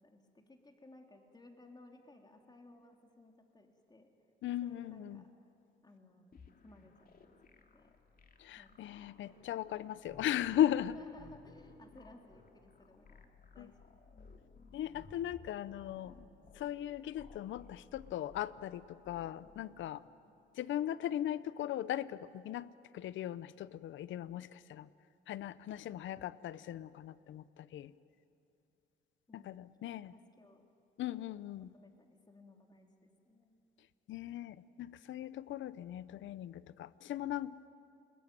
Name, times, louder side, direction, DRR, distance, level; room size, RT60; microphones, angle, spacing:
voice 1, 0.0-4.1 4.6-5.3 5.8-6.4 6.6-8.0 8.6-9.5 10.6-13.3 13.5-14.4 29.3-30.7 31.1-31.3 31.7-33.5, left 2 dB, 20° left, 3 dB, 3.5 m, -60 dB
voice 2, 4.4-5.2 8.4-11.0 13.6-13.7 14.7-16.2 16.5-20.0 20.5-24.9 25.3-27.9 29.3-30.1 31.0-31.7 34.1-37.7, left 12 dB, 75° left, 17 dB, 0.8 m, -38 dB
sound 1, 6.3-19.9, left 4 dB, 50° left, 2.5 m, -59 dB
30.0 x 21.0 x 9.3 m, 2.7 s
cardioid pair, 90°, 20 cm